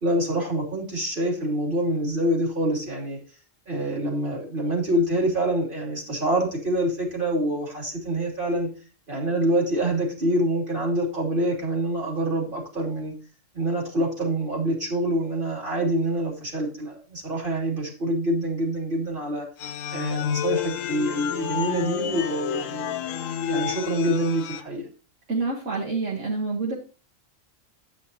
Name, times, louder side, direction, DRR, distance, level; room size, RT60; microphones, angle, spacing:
voice 1, 0.0-3.2 3.7-8.7 9.1-13.1 13.5-19.4 19.9-22.9 23.5-24.9, right 1 dB, 40° right, -2 dB, 3.2 m, -26 dB
sound 1, 19.6-24.6, left 9 dB, 85° left, 1.0 m, -29 dB
voice 2, 25.3-26.7, right 3 dB, 70° right, -1 dB, 1.7 m, -27 dB
9.2 x 8.4 x 2.8 m, 0.36 s
omnidirectional pair, 1.3 m